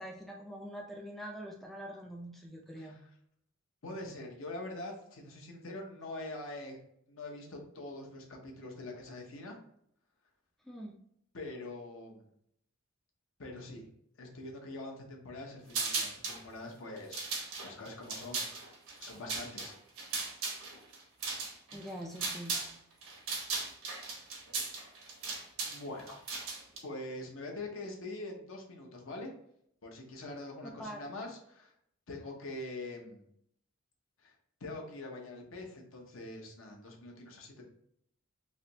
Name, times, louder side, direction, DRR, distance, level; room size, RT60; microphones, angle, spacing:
voice 1, 0.0-3.0 10.6-11.0 21.7-22.6 30.8-31.0, equal, ahead, 0 dB, 0.3 m, -44 dB
voice 2, 3.8-6.8 7.1-9.6 11.3-12.2 13.4-13.9 14.2-18.7 19.0-19.8 25.6-26.2 26.8-29.3 29.8-31.7 32.1-33.2 34.2-34.3 34.6-37.6, left 2 dB, 70° left, 1 dB, 0.8 m, -44 dB
sound 1, 15.7-16.4 17.0-22.7 23.0-26.8, right 4 dB, 80° right, 1.0 m, -37 dB
3.3 x 2.9 x 2.7 m, 0.70 s
head